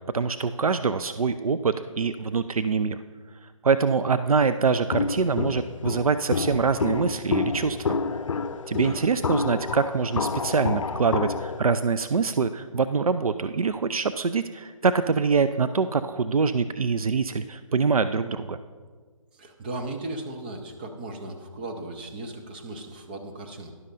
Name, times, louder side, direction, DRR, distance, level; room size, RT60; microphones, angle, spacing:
voice 1, 0.1-3.0 3.6-7.8 8.7-18.6, right 5 dB, 85° right, 12 dB, 0.4 m, -24 dB
Walk footsteps, 4.9-11.6, left 4 dB, 65° left, 0.5 m, -29 dB
voice 2, 8.7-9.0 19.3-23.7, right 2 dB, 15° right, 3 dB, 0.5 m, -37 dB
12.0 x 11.0 x 2.6 m, 1.5 s
figure-of-eight pair, 150°, 18 cm